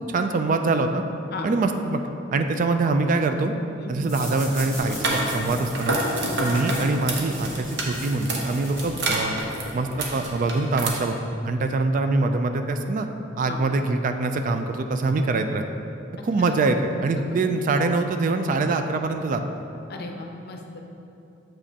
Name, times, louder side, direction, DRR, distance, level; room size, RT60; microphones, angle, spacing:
voice 1, 0.1-1.0 1.4-2.0 2.3-3.6 3.9-6.0 6.4-9.4 9.7-11.2 11.4-13.1 13.4-15.6 16.2-19.4, right 3 dB, 45° right, 7 dB, 0.3 m, -24 dB
sound 1, 4.0-9.3, equal, 15° right, 1.3 m, -40 dB
sound 2, 4.8-10.9, right 1 dB, 65° right, 0.8 m, -29 dB
voice 2, 19.9-20.8, left 3 dB, 55° left, 2 dB, 0.6 m, -36 dB
7.5 x 5.1 x 2.8 m, 2.8 s
head